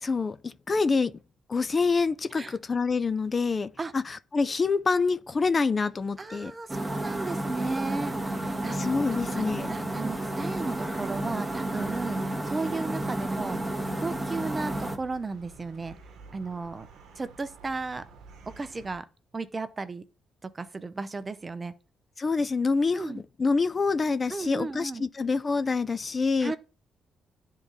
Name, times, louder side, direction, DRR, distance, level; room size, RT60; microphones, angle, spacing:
voice 1, 0.0-1.1 1.5-6.5 8.7-9.7 22.2-26.5, left 4 dB, 35° left, 0.3 m, -26 dB
voice 2, 6.2-8.8 9.3-13.6 14.0-16.0 16.3-16.9 17.2-18.1 18.6-19.1 19.3-20.0 20.4-21.7 22.9-23.2 24.3-25.0 26.4-26.6, right 3 dB, 25° right, 0.5 m, -34 dB
Room Tone - Empty room with AC & desktop computer running, 6.7-15.0, right 1 dB, 10° right, 1.1 m, -31 dB
sound 1, 9.2-19.0, right 4 dB, 85° right, 0.8 m, -51 dB
10.5 x 3.6 x 2.7 m
cardioid pair, 90°, 0 cm